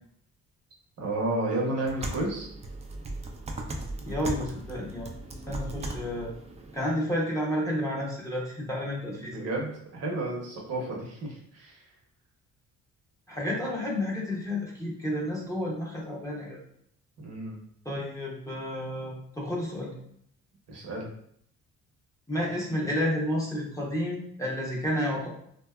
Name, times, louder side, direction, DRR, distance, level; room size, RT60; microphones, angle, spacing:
voice 1, 1.0-2.5 9.1-11.8 17.2-17.6 20.7-21.1, right 2 dB, 55° right, -2 dB, 0.9 m, -32 dB
sound 1, 1.8-6.9, right 1 dB, 20° right, 0.3 m, -37 dB
voice 2, 4.1-5.1 5.5-6.3 6.7-9.5 13.3-16.6 17.8-19.9 22.3-25.3, left 1 dB, 10° left, -4 dB, 0.7 m, -31 dB
2.6 x 2.2 x 2.3 m, 0.67 s
cardioid pair, 90°, 30 cm